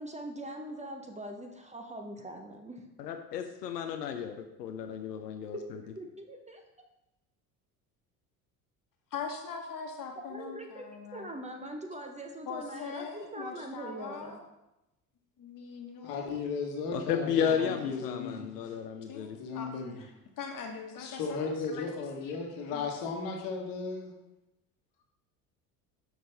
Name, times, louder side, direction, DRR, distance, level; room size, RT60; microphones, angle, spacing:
voice 1, 0.0-2.9 5.5-5.6 6.0-6.6 10.3-10.8 11.1-14.4, right 1 dB, 15° right, 3 dB, 0.7 m, -42 dB
voice 2, 3.0-5.8 16.9-19.4, left 8 dB, 90° left, 5 dB, 0.5 m, -33 dB
voice 3, 9.1-11.3 12.5-14.4 15.4-16.5 17.4-18.0 19.1-19.7 20.0-20.1 20.4-21.8 22.2-22.3 22.7-22.9, left 6 dB, 45° left, 3 dB, 1.3 m, -42 dB
voice 4, 16.0-18.8 19.4-20.0 21.0-24.1, left 4 dB, 65° left, 2 dB, 1.4 m, -36 dB
6.2 x 5.0 x 3.3 m, 0.94 s
hypercardioid pair, 65°, 47 cm